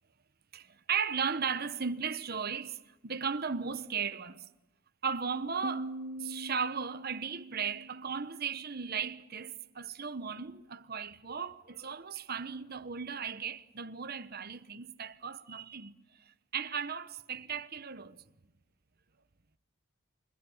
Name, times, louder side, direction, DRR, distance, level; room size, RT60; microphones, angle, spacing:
voice 1, 0.5-2.8 3.0-4.5 5.0-5.9 6.2-15.9 16.5-18.2, right 6 dB, 45° right, 1.1 m, -36 dB
Piano, 5.6-9.1, right 1 dB, 65° right, 3.2 m, -43 dB
28.5 x 25.5 x 7.3 m
head